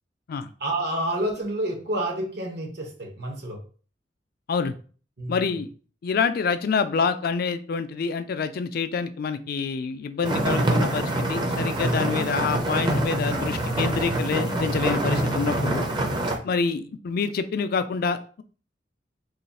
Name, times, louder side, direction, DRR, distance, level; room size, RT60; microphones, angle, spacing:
voice 1, 0.6-3.6 5.2-5.4, right 1 dB, 65° right, 0 dB, 1.1 m, -29 dB
voice 2, 5.3-5.7 6.0-15.9 16.4-18.4, left 5 dB, 55° left, 11 dB, 0.3 m, -27 dB
sound 1, 10.2-16.4, right 1 dB, 25° right, 0.6 m, -25 dB
3.1 x 2.3 x 4.1 m, 0.40 s
head